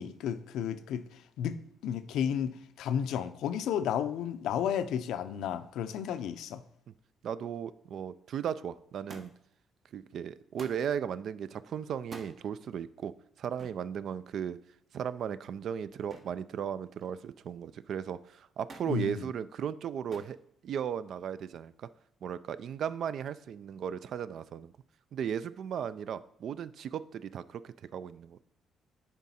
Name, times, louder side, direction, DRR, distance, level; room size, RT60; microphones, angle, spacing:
voice 1, 0.0-6.6 18.9-19.3, left 8 dB, 85° left, 11 dB, 0.5 m, -33 dB
voice 2, 7.2-9.3 9.9-14.6 14.9-20.4 20.6-21.9 22.2-24.7 25.1-28.4, right 8 dB, 65° right, 15 dB, 0.3 m, -36 dB
Thump thud, 9.1-9.6 10.6-10.9 12.0-12.4 13.6-13.8 16.1-16.4 16.8-17.3 18.7-19.0 20.1-20.4 21.3-21.8 22.8-22.9, right 3 dB, 50° right, 1.1 m, -49 dB
10.0 x 3.6 x 4.2 m, 0.71 s
cardioid pair, 90°, 0 cm